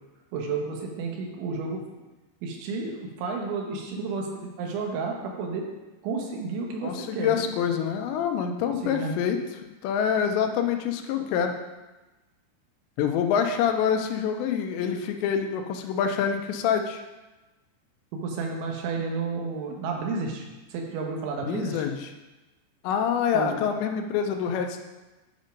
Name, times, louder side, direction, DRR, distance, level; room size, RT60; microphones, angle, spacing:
voice 1, 0.3-1.8 2.4-5.7 6.0-7.5 8.7-9.1 18.2-21.9 23.3-23.6, right 4 dB, 85° right, 1 dB, 3.6 m, -31 dB
voice 2, 6.8-9.4 9.8-11.6 13.0-17.0 21.5-22.1 22.8-24.8, left 7 dB, 80° left, 5 dB, 2.9 m, -26 dB
9.7 x 5.4 x 5.2 m, 1.1 s
omnidirectional pair, 5.2 m